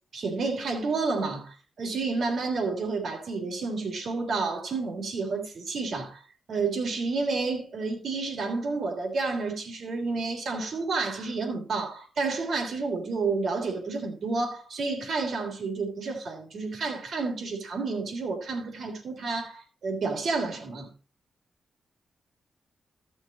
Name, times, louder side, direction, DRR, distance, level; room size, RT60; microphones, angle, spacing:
voice 1, 0.1-6.2 6.5-20.9, right 3 dB, 65° right, 3.1 m, -30 dB
14.5 x 6.3 x 4.0 m
cardioid pair, 90°, 0 cm